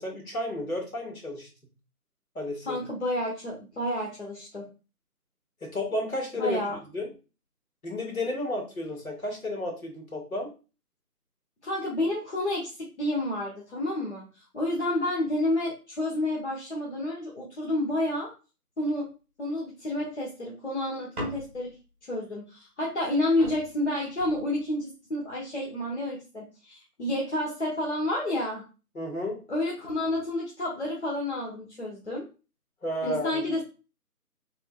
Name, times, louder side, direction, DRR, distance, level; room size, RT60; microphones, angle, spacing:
voice 1, 0.0-1.5 2.4-2.8 5.6-6.6 6.9-7.1 7.8-10.5 29.0-29.4 32.8-33.4, left 1 dB, 60° left, 1 dB, 2.1 m, -32 dB
voice 2, 2.6-4.7 6.4-6.8 11.6-18.3 18.8-19.1 19.4-21.7 22.1-28.6 29.5-32.2 33.0-33.6, left 1 dB, 45° left, -4 dB, 1.3 m, -30 dB
sound 1, 21.1-21.9 23.0-23.1 23.4-24.9 25.6-26.0, right 1 dB, 5° right, 1.4 m, -41 dB
5.8 x 3.6 x 2.4 m, 0.33 s
figure-of-eight pair, 160°, 47 cm